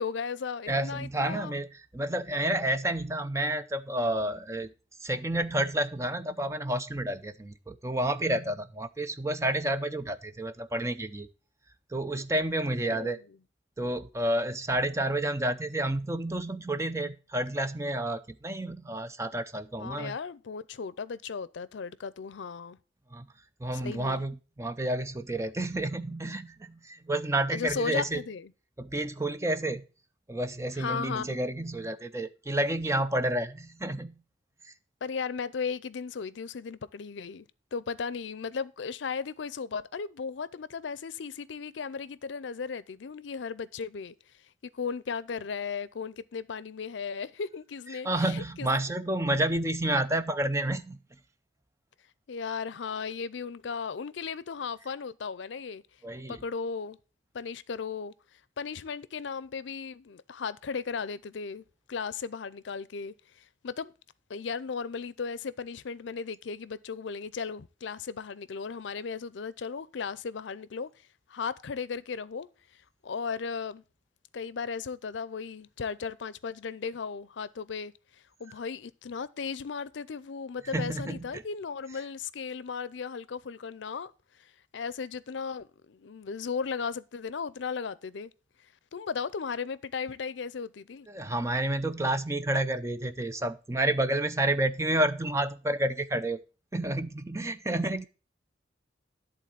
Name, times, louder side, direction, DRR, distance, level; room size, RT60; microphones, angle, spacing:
voice 1, 0.0-1.6 12.6-13.1 19.8-22.8 23.7-24.2 27.5-28.5 30.8-31.4 35.0-37.5 37.7-44.1 44.7-48.7 52.3-55.8 56.3-57.0 57.3-58.1 58.6-63.1 63.6-63.9 64.3-70.9 71.3-72.5 73.0-73.8 74.3-77.9 78.4-84.1 84.4-84.5 84.7-88.3 88.9-91.1, left 5 dB, 80° left, 0.5 m, -36 dB
voice 2, 0.7-1.7 1.9-4.7 5.0-11.3 11.9-13.2 13.8-20.1 23.1-23.2 23.6-28.2 28.8-29.8 30.3-34.2 48.0-51.0 56.0-56.4 80.7-81.4 91.1-96.4 96.7-98.0, right 1 dB, 15° right, 0.5 m, -30 dB
11.0 x 3.9 x 7.4 m
head